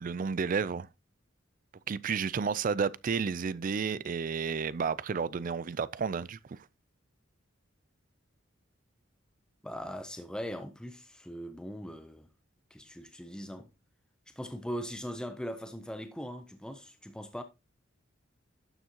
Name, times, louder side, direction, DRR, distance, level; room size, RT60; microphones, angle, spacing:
voice 1, 0.0-0.9 1.9-6.6, right 5 dB, 45° right, 0.4 m, -31 dB
voice 2, 9.6-12.3 12.7-13.7 14.3-17.4, equal, 5° left, 0.6 m, -40 dB
12.0 x 7.1 x 2.9 m
head